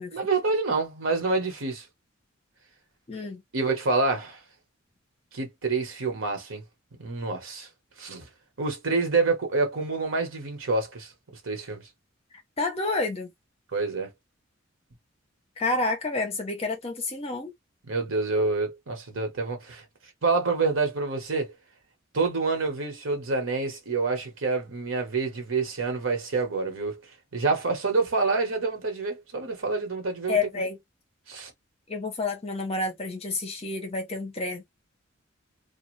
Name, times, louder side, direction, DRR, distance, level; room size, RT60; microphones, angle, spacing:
voice 1, 0.1-1.9 3.5-4.4 5.3-6.6 7.0-7.7 8.0-8.3 8.6-11.1 11.4-11.8 13.7-14.1 17.9-19.8 20.2-21.5 22.1-27.0 27.3-30.7 31.3-31.5, right 3 dB, 85° right, 1.2 m, -27 dB
voice 2, 3.1-3.4 12.6-13.3 15.6-17.5 30.3-30.8 31.9-34.6, left 3 dB, 30° left, 0.8 m, -29 dB
2.5 x 2.4 x 3.1 m
head